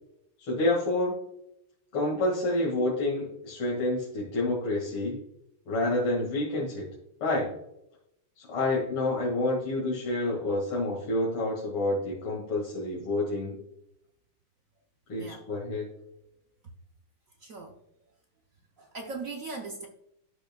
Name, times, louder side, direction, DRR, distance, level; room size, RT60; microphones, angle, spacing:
voice 1, 0.4-1.2 1.9-5.2 5.7-6.9 7.2-7.5 8.4-13.6 15.1-15.9, left 2 dB, 80° left, -5 dB, 2.9 m, -28 dB
voice 2, 17.4-17.8 18.8-19.9, right 3 dB, 75° right, 3 dB, 0.7 m, -39 dB
13.0 x 5.6 x 2.2 m, 0.80 s
omnidirectional pair, 2.4 m